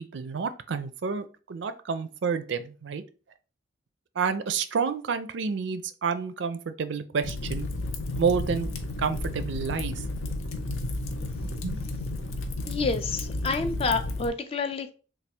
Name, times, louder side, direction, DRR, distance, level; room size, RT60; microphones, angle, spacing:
voice 1, 0.0-3.0 4.2-7.7 8.2-8.7 9.0-10.0 11.4-11.9, right 5 dB, 60° right, 0.4 m, -29 dB
Fire, 7.2-14.3, left 2 dB, 80° left, 0.6 m, -32 dB
voice 2, 12.7-14.9, left 4 dB, 30° left, 0.3 m, -28 dB
3.3 x 2.3 x 4.3 m
head